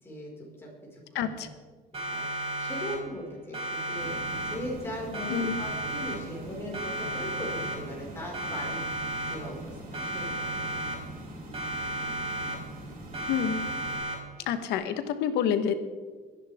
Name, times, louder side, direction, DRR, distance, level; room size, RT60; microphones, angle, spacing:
voice 1, 0.0-1.4 1.9-10.8, equal, 15° left, -5 dB, 5.2 m, -39 dB
voice 2, 1.1-1.5 5.3-5.6 13.3-13.7 14.5-15.7, left 8 dB, 85° left, 9 dB, 1.3 m, -28 dB
Siren, 1.9-3.3 3.5-4.9 5.1-6.5 6.7-8.1 8.3-9.7 9.9-11.3 11.5-12.9 13.1-14.5, right 2 dB, 35° right, 4.4 m, -34 dB
sound 1, 4.0-14.0, right 1 dB, 55° right, 4.6 m, -43 dB
23.5 x 11.0 x 3.6 m, 1.5 s
cardioid pair, 110°, 17 cm